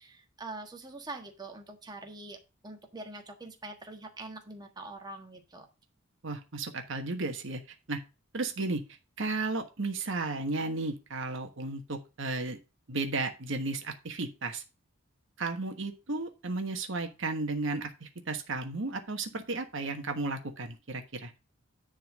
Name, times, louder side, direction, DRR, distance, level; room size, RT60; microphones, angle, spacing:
voice 1, 0.0-2.4 2.6-5.7, right 2 dB, 20° right, 3 dB, 1.5 m, -44 dB
voice 2, 6.2-7.6 7.9-8.0 8.3-8.8 9.2-12.6 12.9-14.6 15.4-21.3, right 3 dB, 65° right, 6 dB, 1.3 m, -34 dB
10.5 x 3.9 x 6.2 m, 0.29 s
head